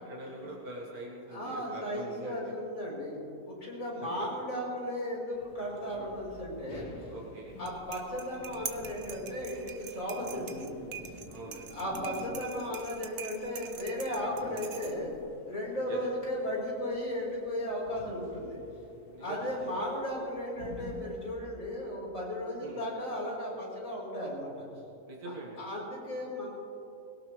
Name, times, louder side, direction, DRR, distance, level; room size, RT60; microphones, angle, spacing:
voice 1, 0.1-2.5 4.0-4.1 7.1-7.5 11.3-11.7 15.9-16.0 19.1-19.4 22.6-22.8 25.1-25.7, right 1 dB, 75° right, -2 dB, 2.1 m, -43 dB
voice 2, 1.3-3.2 3.5-6.9 7.6-10.8 11.7-15.1 15.5-18.6 19.2-24.7 25.2-26.5, equal, 60° left, -5 dB, 4.9 m, -35 dB
sound 1, 5.3-21.4, left 2 dB, 85° left, 2.0 m, -50 dB
sound 2, 7.5-15.2, right 7 dB, 55° right, 1.1 m, -45 dB
21.0 x 17.5 x 3.3 m, 2.9 s
omnidirectional pair, 1.6 m